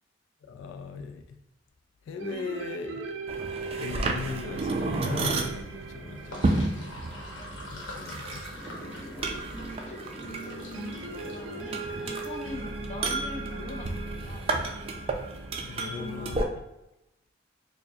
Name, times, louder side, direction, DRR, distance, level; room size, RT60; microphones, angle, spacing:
voice 1, 0.5-1.4 2.1-3.2 3.7-7.0 7.7-8.4 15.6-16.5, left 4 dB, 90° left, 6 dB, 0.3 m, -38 dB
sound 1, 2.2-8.8 10.7-16.1, right 3 dB, 90° right, 0.5 m, -40 dB
sound 2, 3.3-16.4, right 2 dB, 30° right, 0.3 m, -33 dB
Sink (filling or washing), 6.1-12.4, left 1 dB, 70° left, 1.0 m, -42 dB
voice 2, 9.5-11.0 11.3-14.8 15.8-16.4, left 1 dB, 35° left, 1 dB, 0.5 m, -42 dB
4.5 x 2.1 x 2.7 m, 0.90 s
head